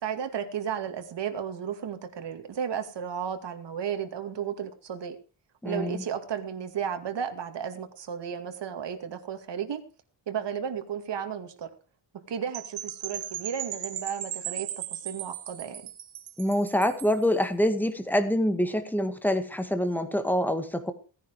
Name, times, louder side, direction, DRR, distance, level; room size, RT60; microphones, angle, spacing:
voice 1, 0.0-5.2 5.6-9.8 10.3-11.7 12.1-15.8, right 8 dB, 65° right, 7 dB, 2.4 m, -34 dB
voice 2, 5.6-6.0 16.4-20.9, equal, 5° left, 8 dB, 1.9 m, -26 dB
Percussion / Wind chime, 12.5-17.2, right 10 dB, 85° right, 1.9 m, -37 dB
17.5 x 10.0 x 4.8 m, 0.35 s
wide cardioid pair, 130°, 45 cm